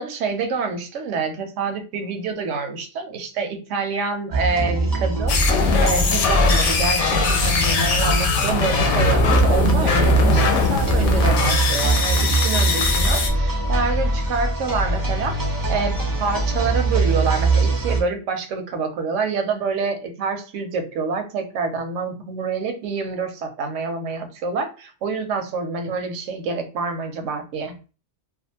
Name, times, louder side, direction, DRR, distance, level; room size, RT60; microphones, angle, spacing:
voice 1, 0.0-27.7, right 4 dB, 85° right, 6 dB, 0.9 m, -27 dB
sound 1, 4.3-18.0, right 3 dB, 35° right, 0.3 m, -22 dB
sound 2, 5.3-13.3, left 5 dB, 80° left, 0.9 m, -21 dB
2.4 x 2.4 x 2.7 m, 0.33 s
omnidirectional pair, 1.2 m